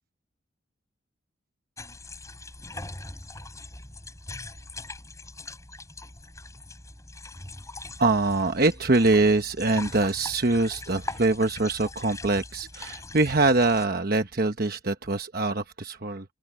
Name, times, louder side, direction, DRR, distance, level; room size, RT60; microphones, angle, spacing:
sound 1, 1.8-13.9, left 2 dB, 15° left, 6.4 m, -41 dB
voice 1, 8.0-16.2, right 2 dB, 45° right, 1.1 m, -24 dB
open air
head